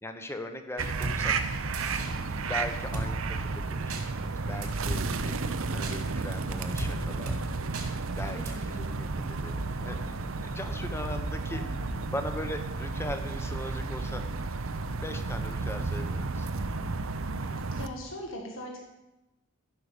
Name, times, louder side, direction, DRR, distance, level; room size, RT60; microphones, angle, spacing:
voice 1, 0.0-1.3 2.1-7.4 8.0-14.3 14.9-16.5, left 1 dB, 10° left, 7 dB, 0.9 m, -40 dB
sound 1, 0.8-17.9, right 3 dB, 65° right, 0.7 m, -32 dB
Drum kit, 1.0-1.2 1.7-2.1 2.9-3.1 3.9-4.0 4.6-5.0 5.8-5.9 6.8-6.9 7.3-7.4 7.7-7.9 8.5-8.6, right 1 dB, 90° right, 2.5 m, -34 dB
voice 2, 8.3-9.0 11.6-12.1 17.7-18.8, equal, 60° left, 0 dB, 1.6 m, -41 dB
14.5 x 5.7 x 6.8 m, 0.98 s
head